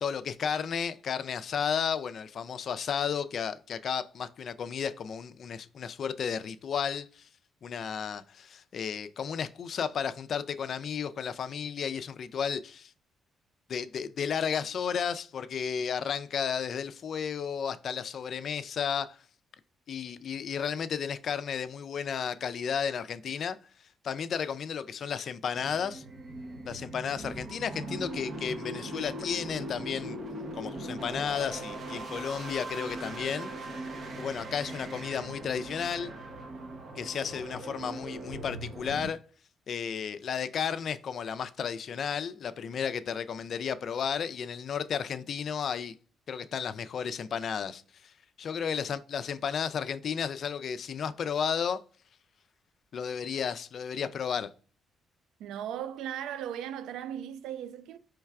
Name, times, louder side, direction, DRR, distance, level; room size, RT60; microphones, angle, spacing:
voice 1, 0.0-7.3 7.6-12.9 13.7-19.2 19.9-23.6 24.0-26.0 26.6-30.2 30.5-33.5 34.2-36.1 37.0-39.2 39.7-45.9 46.3-48.1 48.4-51.8 52.9-54.5, left 7 dB, 55° left, 0.3 m, -33 dB
sound 1, 25.5-39.1, right 1 dB, 55° right, 0.9 m, -40 dB
voice 2, 55.4-58.0, right 10 dB, 85° right, 0.3 m, -37 dB
4.6 x 3.1 x 2.3 m
cardioid pair, 90°, 0 cm